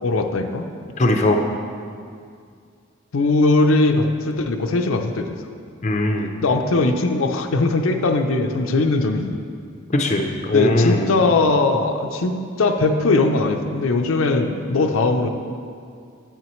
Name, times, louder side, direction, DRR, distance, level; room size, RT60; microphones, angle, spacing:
voice 1, 0.0-0.7 3.1-5.3 6.4-9.4 10.5-15.3, left 3 dB, 85° left, 5 dB, 0.5 m, -20 dB
voice 2, 1.0-1.4 5.8-6.3 9.9-11.1, left 1 dB, 35° left, 2 dB, 0.5 m, -19 dB
8.8 x 8.5 x 3.1 m, 2.3 s
head